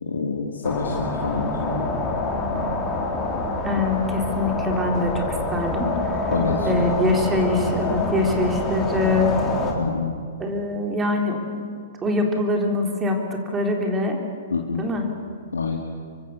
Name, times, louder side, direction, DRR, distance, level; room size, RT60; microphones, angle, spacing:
voice 1, 0.0-1.9 6.3-6.8 7.1-7.2 9.8-10.1 14.5-14.8 15.5-15.8, left 4 dB, 75° left, 0 dB, 2.5 m, -27 dB
sound 1, 0.6-9.7, left 2 dB, 15° left, 4.0 m, -26 dB
voice 2, 3.6-6.2 6.7-9.3 10.4-11.7 12.0-13.2 13.5-14.2 14.8-15.1, left 2 dB, 15° right, 2 dB, 3.7 m, -24 dB
25.0 x 24.0 x 6.9 m, 2.1 s
figure-of-eight pair, 115°, 0 cm